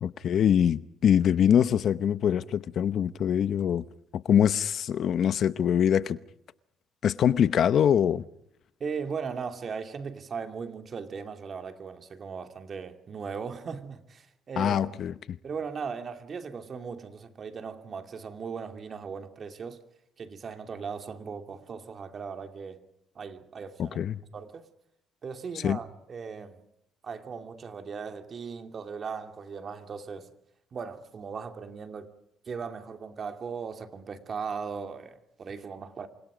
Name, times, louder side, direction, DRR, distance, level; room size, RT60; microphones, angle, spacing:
voice 1, 0.0-3.8 4.1-6.2 7.0-8.2 14.6-15.4 23.8-24.2 25.6-25.8, left 9 dB, 55° left, 0.8 m, -24 dB
voice 2, 8.8-14.9 15.4-19.8 20.2-22.8 23.1-24.0 24.3-24.6 25.2-26.6 27.0-30.3 30.7-32.1 32.5-36.1, right 5 dB, 40° right, 2.7 m, -38 dB
29.0 x 25.5 x 5.1 m
cardioid pair, 120°, 0 cm